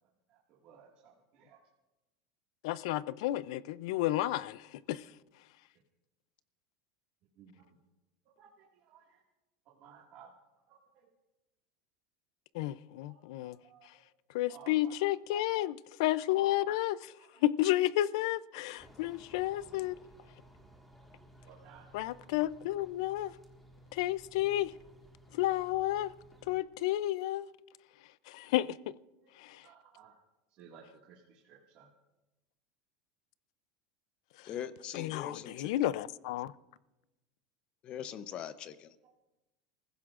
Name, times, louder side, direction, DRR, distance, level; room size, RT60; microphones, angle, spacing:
voice 1, 0.3-1.6 7.4-7.8 8.4-9.2 9.7-10.3 10.7-11.1 13.1-13.9 14.5-15.0 17.1-17.5 21.4-22.3 29.2-29.3 29.6-30.2 30.5-31.9 35.3-35.4 39.0-39.1, right 7 dB, 50° right, 1.9 m, -58 dB
voice 2, 2.6-4.6 4.9-5.0 12.5-13.6 14.3-17.1 17.4-20.0 21.9-23.3 23.9-24.7 25.3-26.1 26.5-27.5 28.3-28.9 35.0-36.5, left 15 dB, 75° left, 0.4 m, -31 dB
sound 1, 18.8-26.6, right 1 dB, 5° left, 1.7 m, -58 dB
voice 3, 34.4-35.9 37.8-39.0, left 9 dB, 35° left, 0.6 m, -42 dB
29.5 x 15.5 x 2.5 m
supercardioid pair, 155°, 3 cm